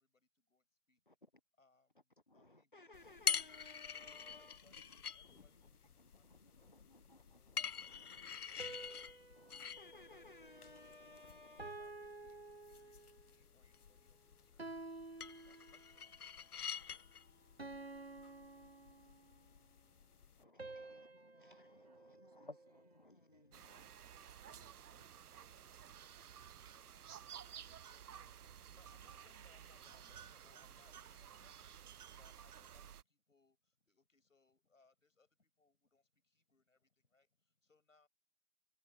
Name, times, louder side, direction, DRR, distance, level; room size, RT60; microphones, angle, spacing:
voice 1, 0.0-1.0 1.6-3.5 4.2-10.2 11.6-14.7 15.4-16.4 28.7-38.1, left 3 dB, 60° left, 6.6 m, -74 dB
voice 2, 2.3-5.7 6.0-8.8 9.3-11.7 20.4-23.9 24.5-25.1, left 2 dB, 35° left, 0.8 m, -61 dB
sound 1, 2.9-20.4, left 7 dB, 85° left, 0.8 m, -47 dB
sound 2, 8.6-11.1 11.6-13.3 14.6-16.1 17.6-19.5 20.6-23.0, right 2 dB, 45° right, 0.6 m, -52 dB
voice 3, 20.8-21.3 21.8-26.1 26.7-28.5, right 5 dB, 25° right, 7.3 m, -77 dB
sound 3, 23.5-33.0, right 9 dB, 85° right, 0.6 m, -54 dB
figure-of-eight pair, 180°, 44 cm